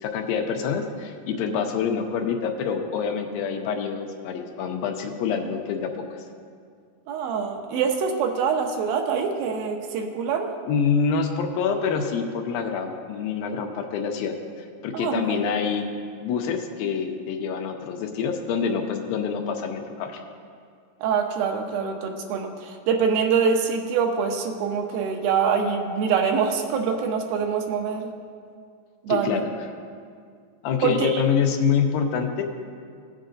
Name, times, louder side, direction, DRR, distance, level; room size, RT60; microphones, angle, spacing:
voice 1, 0.0-6.2 10.7-14.3 14.8-15.9 16.2-20.2 29.1-29.5 30.6-32.4, left 6 dB, 90° left, 4 dB, 2.5 m, -26 dB
voice 2, 7.1-10.5 14.9-15.4 21.0-28.1 29.0-29.4 30.8-31.2, right 6 dB, 85° right, 4 dB, 2.6 m, -25 dB
17.0 x 7.3 x 2.6 m, 2.2 s
omnidirectional pair, 4.2 m